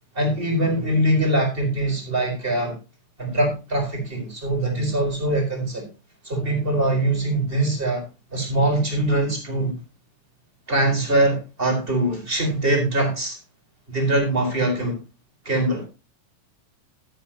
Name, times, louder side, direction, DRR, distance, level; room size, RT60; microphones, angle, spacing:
voice 1, 0.1-2.8 3.2-5.9 6.2-9.8 10.7-13.4 13.9-15.0 15.4-15.9, right 1 dB, 15° right, 4.4 m, -22 dB
12.5 x 12.0 x 2.9 m
omnidirectional pair, 4.0 m